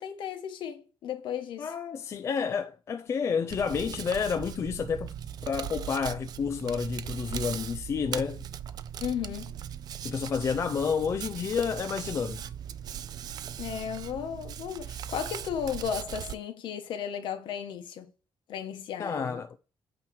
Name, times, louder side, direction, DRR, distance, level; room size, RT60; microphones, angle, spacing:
voice 1, 0.0-1.7 9.0-9.6 13.6-18.1 18.5-19.6, left 8 dB, 65° left, 1.3 m, -35 dB
voice 2, 1.6-5.1 5.5-8.5 10.0-12.4 19.0-19.6, left 6 dB, 30° left, 0.4 m, -30 dB
Hands, 3.5-16.3, right 9 dB, 50° right, 0.4 m, -39 dB
8.7 x 3.0 x 6.2 m
cardioid pair, 175°, 9 cm